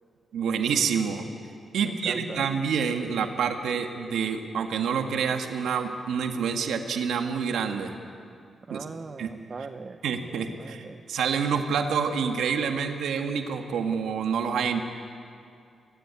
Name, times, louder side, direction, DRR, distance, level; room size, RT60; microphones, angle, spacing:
voice 1, 0.3-1.3 1.7-8.0 8.7-8.8 9.2-9.3 10.0-14.8, right 6 dB, 90° right, 5 dB, 1.8 m, -27 dB
voice 2, 1.8-2.4 8.7-10.0 10.5-11.0, right 4 dB, 40° right, 9 dB, 0.8 m, -39 dB
23.0 x 17.0 x 9.6 m, 2.5 s
cardioid pair, 90°, 0 cm